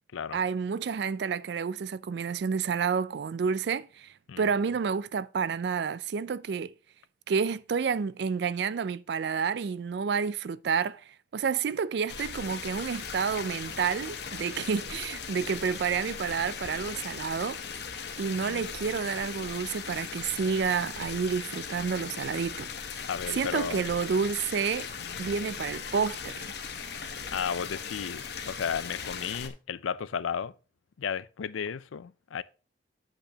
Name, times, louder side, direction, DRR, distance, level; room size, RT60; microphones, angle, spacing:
voice 1, 0.3-4.1 4.4-6.7 7.3-11.0 11.3-17.6 18.2-22.7 23.3-24.9 25.2-26.5, right 6 dB, 60° right, 0.3 m, -29 dB
sound 1, 12.1-29.5, left 6 dB, 55° left, 1.0 m, -38 dB
voice 2, 23.0-23.9 25.0-25.2 27.0-30.5 31.0-32.4, left 7 dB, 90° left, 0.4 m, -34 dB
8.7 x 8.1 x 2.8 m
head